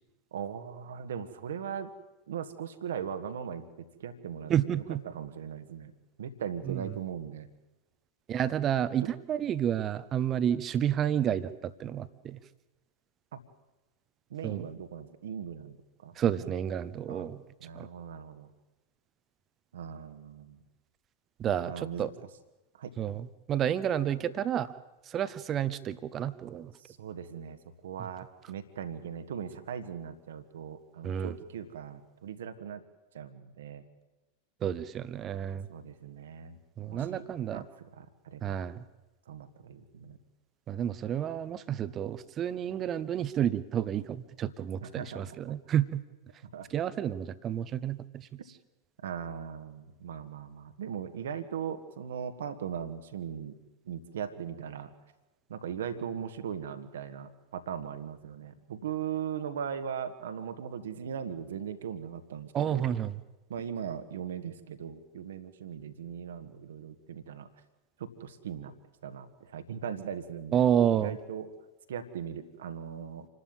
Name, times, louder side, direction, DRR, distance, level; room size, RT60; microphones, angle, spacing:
voice 1, 0.3-1.9 2.3-5.9 6.2-7.5 13.3-13.4 14.3-15.8 16.0-16.5 17.1-17.3 17.6-18.5 19.7-20.6 21.6-22.1 22.8-22.9 26.8-27.6 27.8-32.8 33.1-33.8 35.7-36.6 36.8-37.2 37.5-37.7 38.0-38.6 39.3-40.2 44.8-45.4 46.5-46.7 49.0-53.6 53.9-54.9 55.5-62.9 63.5-67.5 68.0-68.7 69.0-70.6 70.9-71.5 71.9-73.3, right 8 dB, 60° right, 9 dB, 1.7 m, -39 dB
voice 2, 4.5-5.0 6.7-6.8 8.3-12.4 14.4-14.6 16.1-17.4 17.7-17.9 21.4-22.1 23.0-24.7 25.1-26.7 31.0-31.3 34.6-35.7 36.8-37.6 38.4-38.8 40.7-46.0 46.7-48.3 62.5-63.2 70.5-71.2, right 9 dB, 30° right, 15 dB, 1.1 m, -30 dB
27.5 x 12.5 x 9.0 m, 1.1 s
figure-of-eight pair, 90°, 0 cm